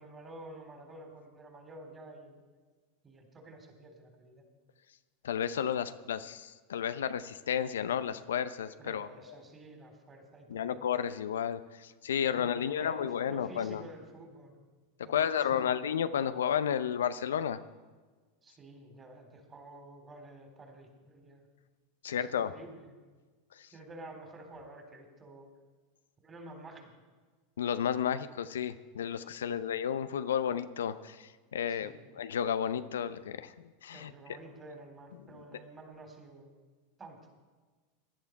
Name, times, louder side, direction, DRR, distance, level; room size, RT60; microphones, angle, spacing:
voice 1, 0.0-2.4 3.0-4.4 8.8-10.8 12.2-14.6 15.0-15.7 18.4-21.5 22.2-22.9 23.7-25.5 26.2-26.9 29.4-29.6 31.8-32.0 33.9-36.5 37.0-37.4, right 2 dB, 25° right, 3 dB, 3.8 m, -50 dB
voice 2, 5.2-9.1 10.5-13.8 15.0-17.6 22.0-22.5 23.5-23.7 27.6-33.5 33.8-34.4, left 8 dB, 80° left, 12 dB, 0.6 m, -32 dB
17.5 x 11.0 x 4.7 m, 1.4 s
hypercardioid pair, 90°, 0 cm